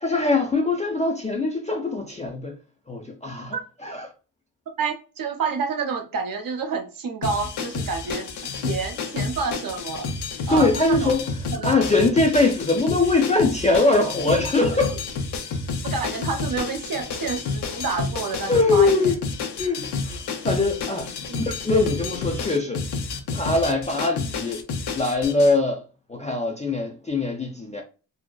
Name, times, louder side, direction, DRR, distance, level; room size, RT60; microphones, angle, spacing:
voice 1, 0.0-2.6 2.9-3.5 3.8-4.1 10.5-11.2 11.6-15.0 18.5-19.2 19.6-21.1 21.4-22.8 23.3-24.6 24.9-25.8 26.1-27.8, left 3 dB, 15° left, 0.4 m, -22 dB
voice 2, 4.8-10.1 10.5-11.1 11.5-11.7 14.9-15.0 15.9-19.1 21.2-21.5, right 4 dB, 45° right, 0.7 m, -29 dB
sound 1, 7.2-25.5, left 4 dB, 60° left, 0.6 m, -30 dB
2.7 x 2.1 x 2.2 m
supercardioid pair, 45°, 47 cm